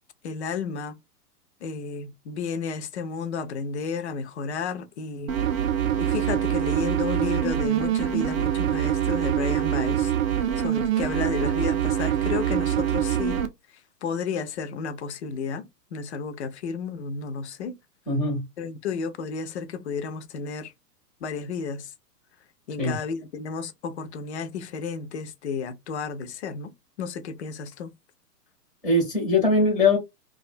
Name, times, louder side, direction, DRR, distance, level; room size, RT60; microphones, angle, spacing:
voice 1, 0.2-1.0 1.6-5.4 6.0-10.1 10.6-13.5 14.0-17.8 18.6-20.7 21.2-21.9 22.7-26.7 27.0-27.9, left 5 dB, 45° left, 0.4 m, -32 dB
sound 1, 5.3-13.5, right 10 dB, 55° right, 0.6 m, -24 dB
voice 2, 18.1-18.4 22.8-23.0 28.8-30.0, left 2 dB, ahead, 0.6 m, -21 dB
2.5 x 2.2 x 2.4 m
hypercardioid pair, 145°, 49 cm